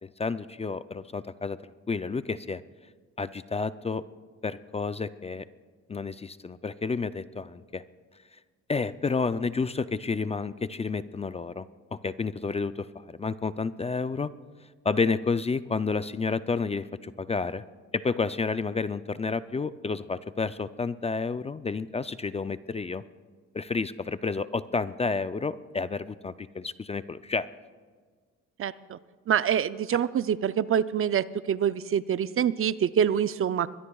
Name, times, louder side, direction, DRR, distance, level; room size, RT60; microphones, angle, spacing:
voice 1, 0.0-1.6 1.9-2.6 3.2-4.0 4.4-5.4 5.9-7.8 8.7-14.3 14.8-17.6 17.9-23.0 23.5-27.5, left 4 dB, 20° left, 13 dB, 0.4 m, -30 dB
voice 2, 28.6-29.0 29.3-33.7, right 8 dB, 45° right, 14 dB, 0.5 m, -26 dB
22.5 x 21.5 x 2.4 m, 1.5 s
cardioid pair, 90°, 30 cm